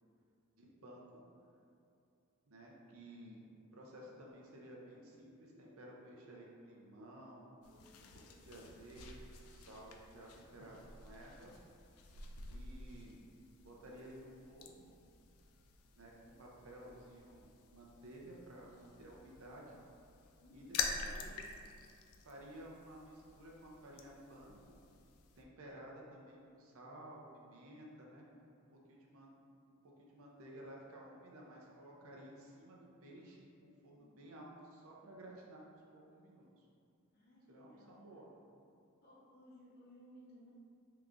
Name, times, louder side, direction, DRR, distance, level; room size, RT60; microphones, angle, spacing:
voice 1, 0.5-1.2 2.5-3.5 3.7-7.5 8.0-11.6 12.5-13.2 13.6-14.9 16.0-19.8 20.5-21.6 22.2-24.8 25.4-28.2 28.9-29.4 29.7-35.6 35.9-36.6 37.5-38.3, right 1 dB, 75° right, -2 dB, 0.6 m, -54 dB
sound 1, 4.4-9.7, equal, 25° right, 1.0 m, -68 dB
sound 2, 7.6-25.4, left 5 dB, 90° left, 0.3 m, -48 dB
voice 2, 7.6-7.9 20.4-20.9 34.0-34.2 37.1-38.0 39.0-40.5, equal, 50° left, -7 dB, 0.9 m, -60 dB
2.9 x 2.4 x 3.6 m, 2.5 s
head